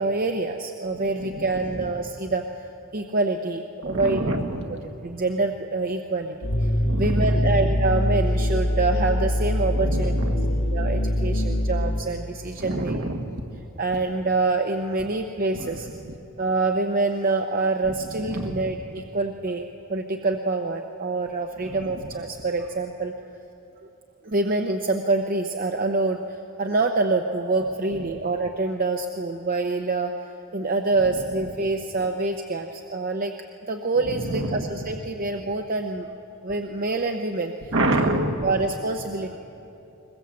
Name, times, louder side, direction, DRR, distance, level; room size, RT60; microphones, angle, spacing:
voice 1, 0.0-2.6 2.9-4.2 5.0-6.7 7.0-10.1 10.6-12.9 13.8-15.9 16.4-19.6 19.9-23.1 24.2-30.1 30.5-33.3 33.7-36.1 36.4-37.7 38.1-39.4, right 3 dB, 40° right, 4 dB, 0.7 m, -26 dB
voice 2, 1.2-1.9 3.8-4.7 6.8-7.7 9.7-10.6 12.6-13.3 15.5-15.8 18.3-18.7 21.9-22.1 28.1-28.2 34.1-34.8 37.7-38.5, right 1 dB, 60° right, 4 dB, 1.7 m, -28 dB
sound 1, 6.4-12.0, left 1 dB, 80° left, 2.1 m, -23 dB
21.5 x 21.5 x 7.4 m, 2.9 s
head